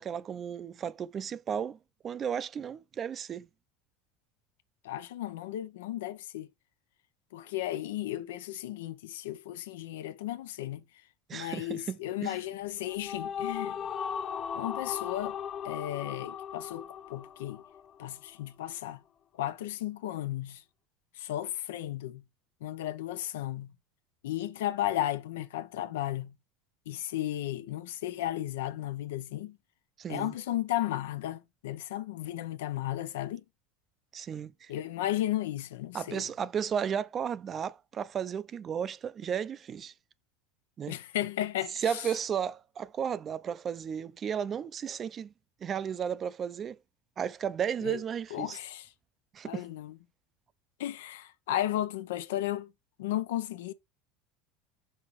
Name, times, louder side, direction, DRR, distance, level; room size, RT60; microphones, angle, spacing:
voice 1, 0.0-1.8 2.0-3.5 11.3-12.4 30.0-30.3 34.1-34.7 35.9-39.9 40.8-41.0 41.7-45.3 45.6-46.8 47.2-48.6 49.3-49.6, right 8 dB, 35° right, 0.4 m, -34 dB
voice 2, 4.8-6.5 7.3-10.8 11.3-13.8 14.5-15.4 15.6-17.6 18.0-19.0 19.4-20.6 21.2-22.2 22.6-23.7 24.2-26.4 26.9-29.6 30.1-33.4 34.7-36.2 40.9-42.0 47.8-48.0 48.3-48.9 49.4-50.0 50.8-52.7 53.0-53.7, left 13 dB, 85° left, 0.6 m, -34 dB
sound 1, 12.6-18.1, left 8 dB, 35° left, 0.5 m, -37 dB
5.6 x 5.5 x 3.1 m
supercardioid pair, 110°, 0 cm